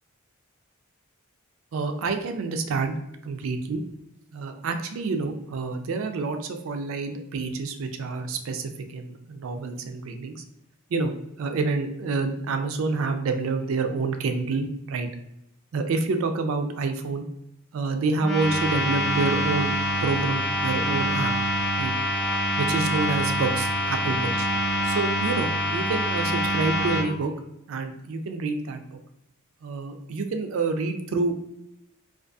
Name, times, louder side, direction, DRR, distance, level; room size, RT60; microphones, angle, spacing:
voice 1, 1.7-3.0 3.2-3.8 4.3-10.3 10.9-11.1 11.4-15.1 15.7-17.3 17.7-19.7 20.0-21.3 21.8-21.9 22.6-24.5 24.8-27.3 27.7-29.0 29.6-31.5, right 3 dB, 70° right, 6 dB, 0.4 m, -28 dB
sound 1, 18.2-27.0, equal, 5° left, 0.8 m, -25 dB
2.6 x 2.4 x 2.3 m, 0.84 s
head